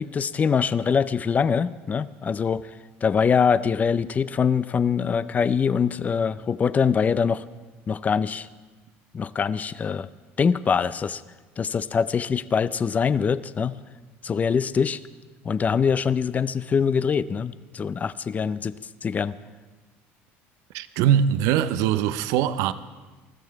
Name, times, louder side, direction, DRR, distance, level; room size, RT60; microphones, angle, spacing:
voice 1, 0.0-2.7 3.0-7.4 7.9-8.5 9.1-10.1 10.4-11.2 11.6-13.8 14.2-15.0 15.4-18.7 19.0-19.4, left 6 dB, 30° left, 0.5 m, -23 dB
voice 2, 20.7-22.7, right 10 dB, 75° right, 0.7 m, -22 dB
20.5 x 14.0 x 4.7 m
supercardioid pair, 110°, 5 cm